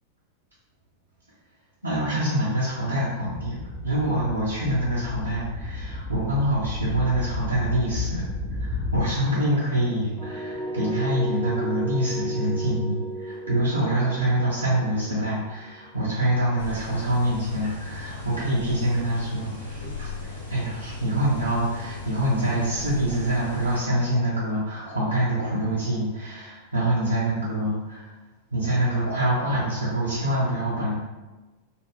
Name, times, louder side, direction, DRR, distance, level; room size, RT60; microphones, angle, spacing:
voice 1, 1.8-20.1 20.5-28.1 28.5-30.9, right 1 dB, 80° right, -9 dB, 0.5 m, -25 dB
sound 1, 3.2-9.1, left 2 dB, 15° left, 0.5 m, -33 dB
sound 2, 10.2-16.0, right 1 dB, 5° right, 0.8 m, -33 dB
sound 3, 16.6-23.8, left 3 dB, 85° left, 0.9 m, -37 dB
2.4 x 2.0 x 3.2 m, 1.2 s
figure-of-eight pair, 90°, 0 cm